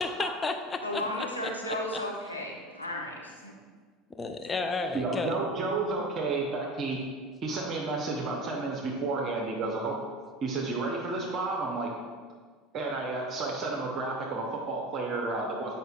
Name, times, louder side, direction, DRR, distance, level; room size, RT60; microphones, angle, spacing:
voice 1, 0.0-1.3 4.1-5.4, left 3 dB, 20° left, 6 dB, 0.4 m, -32 dB
voice 2, 0.8-3.5 4.7-4.8, left 1 dB, 90° left, -3 dB, 0.7 m, -35 dB
voice 3, 4.9-7.0 7.4-9.9 10.4-11.9 12.7-15.7, right 3 dB, 35° right, -1 dB, 0.8 m, -31 dB
7.8 x 5.1 x 2.4 m, 1.5 s
figure-of-eight pair, 70°, 0 cm